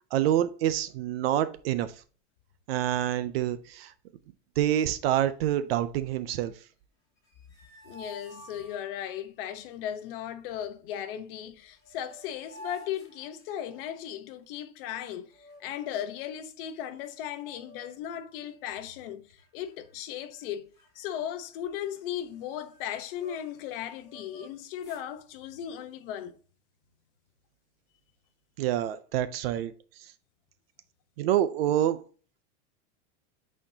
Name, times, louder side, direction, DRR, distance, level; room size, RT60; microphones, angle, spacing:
voice 1, 0.1-1.9 2.7-3.9 4.6-6.5 28.6-29.7 31.2-32.0, right 12 dB, 50° right, 0.6 m, -27 dB
sound 1, 7.2-9.2 11.4-11.5 11.7-13.9 15.3-16.1 16.7-16.8 17.0-18.1 18.5-18.8 19.4-20.0 20.3-20.5 20.7-23.6 24.0-25.1, right 2 dB, 10° left, 2.6 m, -51 dB
voice 2, 7.8-15.3 15.6-20.7 20.9-26.3, left 10 dB, 45° left, 0.9 m, -37 dB
8.7 x 4.3 x 2.7 m
supercardioid pair, 165°, 37 cm